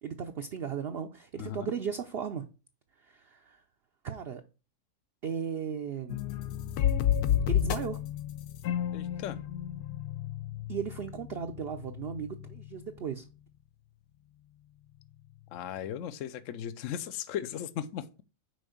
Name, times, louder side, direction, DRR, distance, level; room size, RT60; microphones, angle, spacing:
voice 1, 0.0-2.5 3.0-3.6 4.0-4.4 5.2-6.2 7.5-8.0 10.7-13.2, right 7 dB, 55° right, 0.7 m, -36 dB
sound 1, 6.1-12.9, left 10 dB, 80° left, 1.2 m, -31 dB
voice 2, 8.9-9.5 15.5-18.2, left 10 dB, 65° left, 0.9 m, -37 dB
6.2 x 4.6 x 6.4 m
omnidirectional pair, 1.6 m